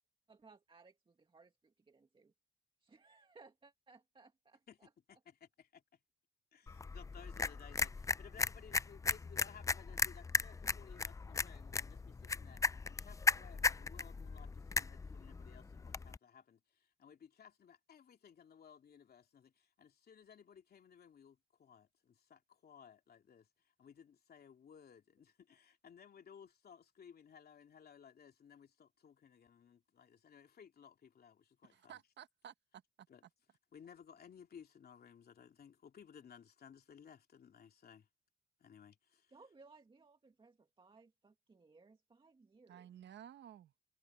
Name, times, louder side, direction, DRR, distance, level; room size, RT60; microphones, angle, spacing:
voice 1, 0.3-2.3 2.8-4.9 39.3-42.9, right 4 dB, 25° right, 2.0 m, -63 dB
voice 2, 4.7-5.8 6.5-31.9 33.1-33.2 33.7-38.1 38.6-39.3, left 7 dB, 50° left, 2.9 m, -59 dB
sound 1, 6.7-16.2, left 4 dB, 15° left, 0.3 m, -37 dB
voice 3, 31.6-33.1 42.7-43.7, right 10 dB, 65° right, 1.2 m, -55 dB
cardioid pair, 90°, 20 cm